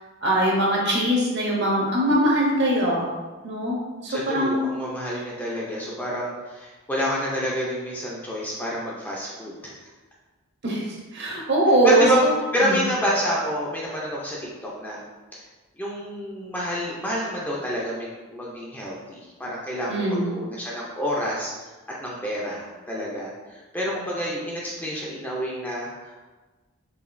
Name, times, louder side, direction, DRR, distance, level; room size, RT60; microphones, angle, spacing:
voice 1, 0.2-3.1 3.4-4.7 10.6-10.9 11.1-12.3 12.6-12.8 19.9-20.3, right 1 dB, 50° right, -3 dB, 0.9 m, -22 dB
voice 2, 4.1-9.7 11.8-15.0 15.3-15.4 15.8-21.5 22.0-26.1, equal, 10° left, -5 dB, 0.5 m, -28 dB
4.9 x 2.8 x 2.6 m, 1.2 s
head